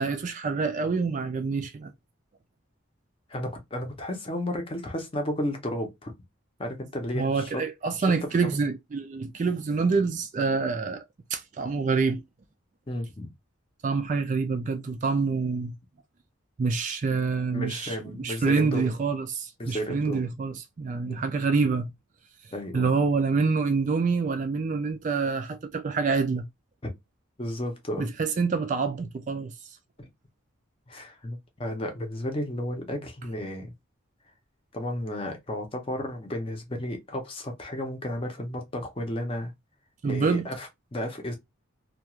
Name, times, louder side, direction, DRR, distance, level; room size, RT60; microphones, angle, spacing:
voice 1, 0.0-1.9 7.1-11.1 11.3-12.2 13.8-15.8 16.6-21.9 22.7-26.5 28.0-29.5 40.0-40.5, right 4 dB, 40° right, 0.3 m, -26 dB
voice 2, 3.3-6.1 6.6-7.6 12.9-13.3 17.5-18.9 19.6-20.2 21.1-21.2 22.5-22.9 26.8-26.9 27.4-28.1 30.0-30.1 30.9-33.7 34.7-39.5 40.0-41.3, left 1 dB, 25° left, 0.6 m, -33 dB
2.3 x 2.3 x 2.8 m
head